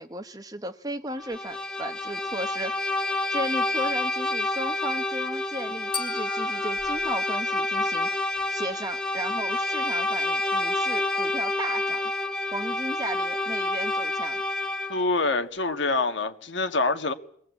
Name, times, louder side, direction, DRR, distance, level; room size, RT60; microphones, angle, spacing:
voice 1, 0.0-2.8 3.3-8.1 8.5-12.0 12.5-14.4, right 1 dB, 20° right, 1.1 m, -35 dB
Bowed string instrument, 1.2-15.1, left 2 dB, 5° left, 1.6 m, -28 dB
sound 1, 5.9-8.2, left 5 dB, 25° left, 1.4 m, -39 dB
voice 2, 14.9-17.1, left 3 dB, 75° left, 1.7 m, -25 dB
22.0 x 18.0 x 8.4 m
head